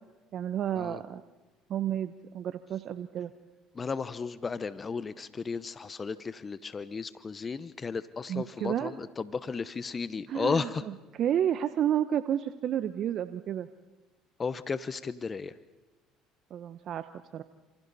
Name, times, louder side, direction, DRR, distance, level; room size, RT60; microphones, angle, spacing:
voice 1, 0.3-1.2 1.7-3.3 8.3-9.0 10.3-13.7 16.5-17.1 17.3-17.4, right 10 dB, 55° right, 12 dB, 0.9 m, -31 dB
voice 2, 3.7-10.8 14.4-15.5, left 5 dB, 30° left, 14 dB, 0.9 m, -34 dB
29.5 x 27.5 x 4.2 m, 1.1 s
hypercardioid pair, 75°, 0 cm